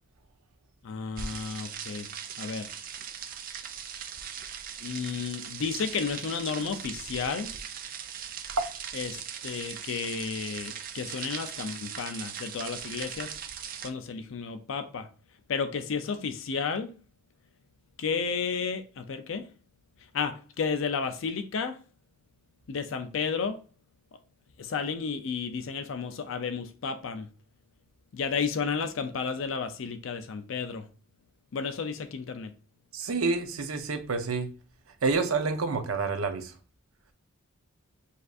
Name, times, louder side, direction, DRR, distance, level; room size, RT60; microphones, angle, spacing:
voice 1, 0.8-2.1 2.4-2.7 4.8-7.5 8.9-13.3 13.8-15.1 15.5-17.0 18.0-19.5 20.1-21.8 22.7-23.6 24.6-27.3 28.1-30.9 31.5-32.5, left 5 dB, 60° left, 0.4 m, -32 dB
sound 1, 1.2-13.9, right 8 dB, 40° right, 0.4 m, -39 dB
voice 2, 32.9-34.5 35.0-36.5, right 4 dB, 80° right, 0.7 m, -28 dB
6.4 x 2.6 x 2.4 m
head